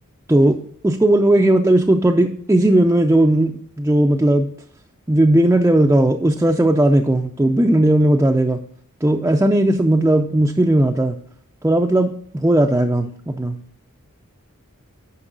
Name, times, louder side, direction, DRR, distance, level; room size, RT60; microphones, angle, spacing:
voice 1, 0.3-4.5 5.1-8.6 9.0-11.2 11.6-13.6, right 1 dB, 10° right, 1 dB, 0.4 m, -16 dB
9.8 x 5.5 x 3.8 m, 0.62 s
head